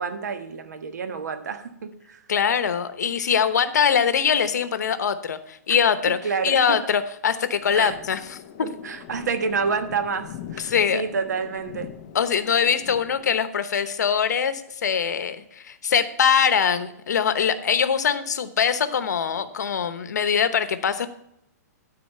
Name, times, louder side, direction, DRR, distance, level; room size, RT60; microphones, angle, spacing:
voice 1, 0.0-2.2 6.1-6.8 7.8-7.9 8.6-11.9, right 5 dB, 85° right, 9 dB, 1.3 m, -29 dB
voice 2, 2.3-6.2 6.4-8.7 10.6-11.0 12.1-21.1, left 7 dB, 90° left, 11 dB, 0.9 m, -23 dB
sound 1, 7.6-13.3, left 9 dB, 35° left, 0.7 m, -42 dB
13.0 x 4.3 x 5.4 m, 0.80 s
hypercardioid pair, 165°, 9 cm